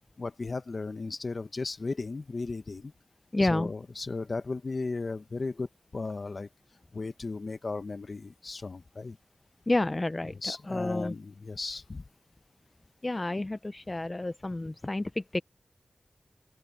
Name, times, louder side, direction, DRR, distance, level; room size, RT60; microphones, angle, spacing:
voice 1, 0.2-2.9 3.4-6.5 6.9-9.2 10.4-12.0, left 3 dB, 50° left, 1.1 m, -35 dB
voice 2, 3.3-3.7 9.7-11.1 13.0-15.4, left 2 dB, 30° left, 0.5 m, -30 dB
open air
wide cardioid pair, 75°, 0 cm